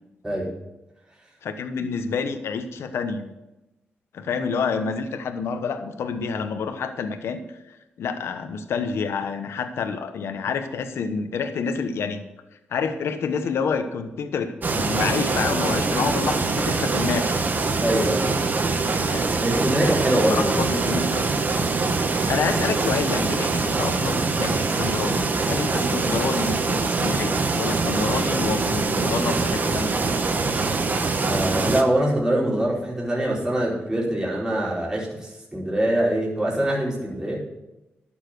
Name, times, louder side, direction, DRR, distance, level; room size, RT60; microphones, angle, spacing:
voice 1, 1.4-3.3 4.1-12.2 12.7-17.3 19.1-19.2 20.3-21.4 22.3-30.0, left 5 dB, 85° left, 7 dB, 1.1 m, -28 dB
sound 1, 14.6-31.8, right 3 dB, 45° right, 1.3 m, -23 dB
voice 2, 17.8-18.3 19.4-20.5 31.3-37.4, right 1 dB, 15° right, -6 dB, 4.3 m, -23 dB
11.5 x 7.4 x 6.3 m, 0.97 s
cardioid pair, 85°, 4 cm